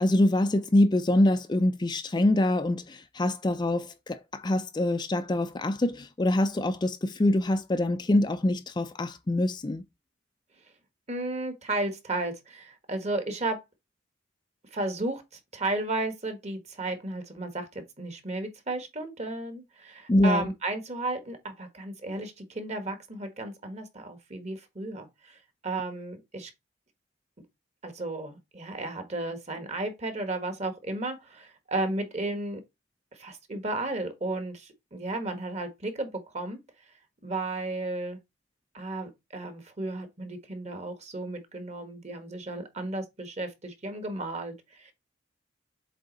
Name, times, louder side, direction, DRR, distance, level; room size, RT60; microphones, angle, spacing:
voice 1, 0.0-9.8 20.1-20.5, left 1 dB, 25° left, 0.4 m, -25 dB
voice 2, 11.1-13.6 14.7-15.2 15.5-17.7 18.0-25.4 25.6-26.5 27.8-32.6 33.2-36.6 37.2-38.2 38.7-44.9, right 2 dB, 35° right, 1.5 m, -33 dB
7.6 x 3.5 x 4.0 m
head